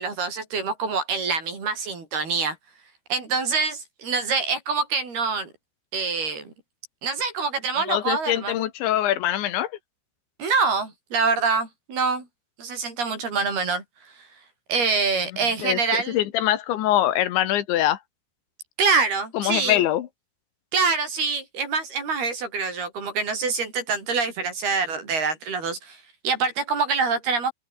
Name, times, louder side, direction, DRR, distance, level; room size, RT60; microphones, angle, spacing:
voice 1, 0.0-2.6 3.1-5.5 5.9-6.5 7.0-8.6 10.4-12.3 12.6-13.8 14.7-16.2 18.8-19.8 20.7-26.0 26.2-27.5, right 4 dB, 55° right, 8.2 m, -25 dB
voice 2, 7.9-9.7 15.6-18.0 19.3-20.1, left 13 dB, 80° left, 3.9 m, -23 dB
omnidirectional pair, 5.2 m